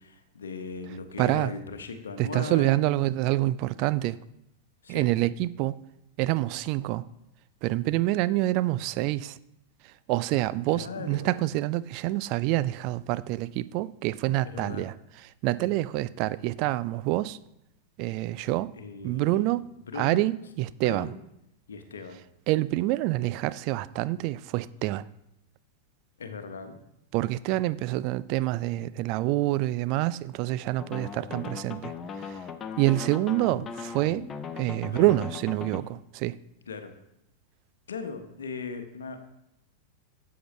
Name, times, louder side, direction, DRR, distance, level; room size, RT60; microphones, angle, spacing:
voice 1, 0.0-2.8 4.8-5.1 10.7-11.4 14.4-14.9 18.8-19.5 19.9-20.3 20.8-21.2 21.7-22.2 26.2-26.8 34.8-35.2 36.7-36.9 37.9-39.3, left 4 dB, 70° left, 1.1 m, -38 dB
voice 2, 1.2-1.5 2.2-4.2 4.9-5.8 6.2-7.1 7.6-9.4 9.8-14.9 15.4-17.4 18.0-18.7 19.0-19.6 20.0-21.1 22.5-25.1 27.1-31.9 32.2-32.4 32.8-34.3 34.6-36.4, right 17 dB, 45° right, 0.3 m, -27 dB
sound 1, 30.8-35.8, left 6 dB, 25° left, 0.7 m, -38 dB
12.5 x 7.8 x 3.2 m
figure-of-eight pair, 90°, 0 cm